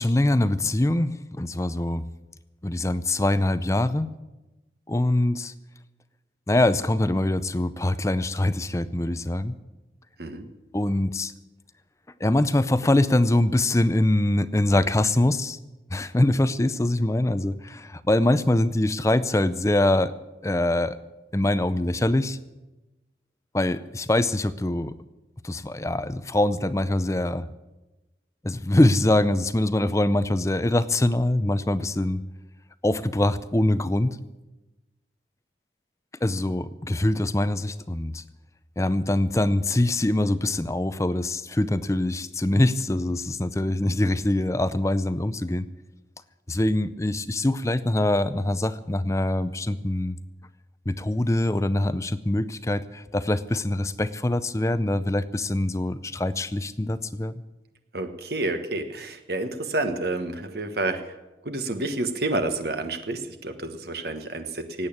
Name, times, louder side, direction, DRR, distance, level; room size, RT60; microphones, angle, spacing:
voice 1, 0.0-2.0 2.6-4.1 4.9-5.5 6.5-9.6 10.7-11.3 12.2-15.6 15.9-20.1 20.4-21.0 21.3-22.4 23.5-24.9 25.4-27.5 28.4-32.2 32.8-34.2 36.2-38.2 38.8-45.6 46.5-50.2 50.9-57.4, left 1 dB, 15° left, 14 dB, 0.5 m, -23 dB
voice 2, 57.9-61.1 61.4-64.9, right 2 dB, 60° right, 8 dB, 1.3 m, -29 dB
18.0 x 8.9 x 8.8 m, 1.1 s
head